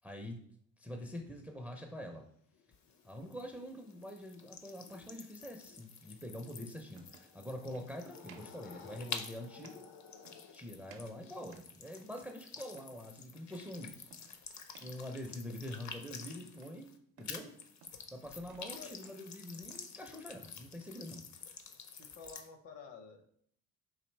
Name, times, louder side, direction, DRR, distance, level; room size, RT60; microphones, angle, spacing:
voice 1, 0.0-0.4 0.8-2.2 3.0-9.9 10.5-13.9 14.8-17.5 18.1-21.3, left 1 dB, 5° right, 3 dB, 0.4 m, -45 dB
sound 1, 1.2-11.5, left 6 dB, 85° left, 0.6 m, -58 dB
sound 2, 2.7-17.0 17.2-22.5, left 6 dB, 40° left, 0.6 m, -50 dB
sound 3, 6.2-6.3 6.9-7.3 7.7-7.9 8.2-8.6 8.9-9.2 9.6-9.9 10.2-10.6 10.9-11.8 12.1-12.4 12.7-13.0 13.5-13.8 14.1-14.4 14.7-15.0 15.3-15.7 16.0-16.8 17.2-17.4 17.8-18.1 18.4-18.7 19.0-19.9, right 6 dB, 85° right, 0.6 m, -60 dB
voice 2, 18.6-19.0 21.9-23.3, left 5 dB, 65° left, 5 dB, 1.0 m, -52 dB
4.2 x 2.7 x 3.2 m, 0.65 s
supercardioid pair, 70°, 43 cm